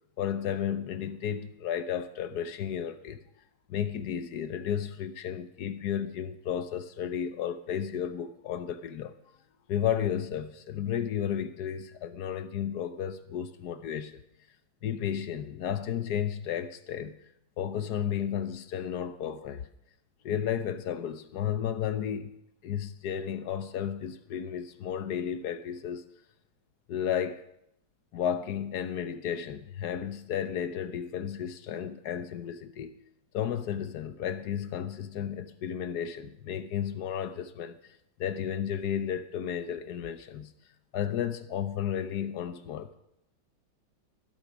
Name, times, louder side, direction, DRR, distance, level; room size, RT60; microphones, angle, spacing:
voice 1, 0.2-3.2 3.7-9.1 9.7-14.2 14.8-17.2 17.6-19.7 20.2-22.3 22.6-26.1 26.9-27.4 28.1-33.0 33.3-37.8 38.2-40.5 40.9-42.9, left 9 dB, 65° left, 1.1 m, -33 dB
12.5 x 12.0 x 5.9 m
omnidirectional pair, 2.2 m